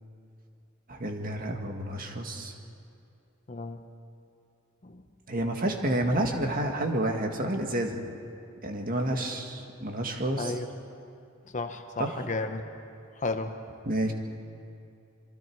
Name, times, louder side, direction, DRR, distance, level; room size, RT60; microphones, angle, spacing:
voice 1, 0.9-2.5 5.3-8.0 8.6-10.5 12.0-12.2 13.9-14.1, right 1 dB, 45° right, 3 dB, 1.9 m, -29 dB
voice 2, 3.5-3.9 4.8-5.0 10.4-10.7 11.5-12.6 13.2-13.6, left 3 dB, 35° left, 7 dB, 0.9 m, -33 dB
26.0 x 23.5 x 4.7 m, 2.6 s
head